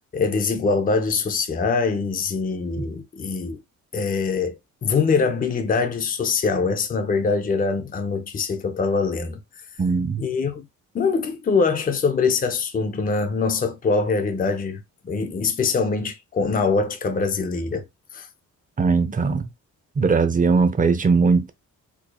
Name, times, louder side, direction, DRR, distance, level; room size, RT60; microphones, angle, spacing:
voice 1, 0.1-3.6 3.9-4.5 4.8-9.4 10.2-10.6 10.9-17.9 18.1-18.3, left 4 dB, 25° left, 0.6 m, -23 dB
voice 2, 9.8-10.2 18.8-19.5 20.0-21.5, right 4 dB, 25° right, 0.6 m, -19 dB
4.6 x 2.7 x 2.3 m
cardioid pair, 120°, 32 cm